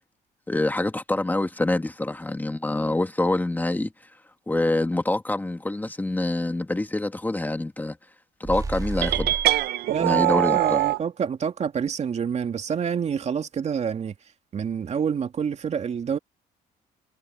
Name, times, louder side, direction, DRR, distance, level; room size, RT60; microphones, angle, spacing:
voice 1, 0.5-3.9 4.5-8.0 8.4-9.4 10.0-10.8, left 2 dB, 10° left, 1.8 m, -26 dB
sound 1, 8.4-9.7, right 3 dB, 20° right, 2.2 m, -31 dB
sound 2, 9.0-11.0, right 15 dB, 70° right, 0.8 m, -22 dB
voice 2, 9.9-14.1 14.5-16.2, right 7 dB, 40° right, 2.4 m, -27 dB
cardioid pair, 110°, 17 cm